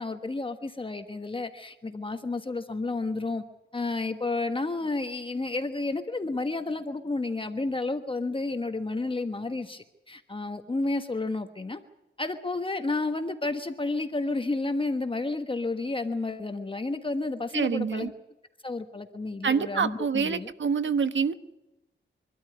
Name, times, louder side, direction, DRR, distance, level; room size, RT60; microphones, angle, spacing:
voice 1, 0.0-3.4 3.7-11.8 12.2-18.1 18.6-20.5, left 3 dB, 25° left, 7 dB, 1.2 m, -31 dB
voice 2, 17.5-18.1 19.4-21.3, right 6 dB, 70° right, 10 dB, 1.3 m, -26 dB
24.5 x 13.0 x 9.4 m, 0.97 s
cardioid pair, 80°, 20 cm